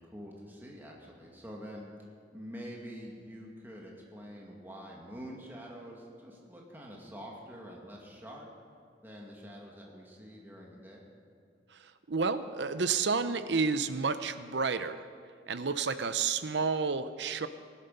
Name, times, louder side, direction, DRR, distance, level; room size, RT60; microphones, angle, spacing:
voice 1, 0.0-1.8 2.3-8.5 9.0-11.0, equal, 10° right, -2 dB, 1.9 m, -46 dB
voice 2, 12.1-15.1 15.5-17.5, right 5 dB, 75° right, 12 dB, 0.7 m, -30 dB
19.5 x 11.5 x 5.4 m, 2.2 s
head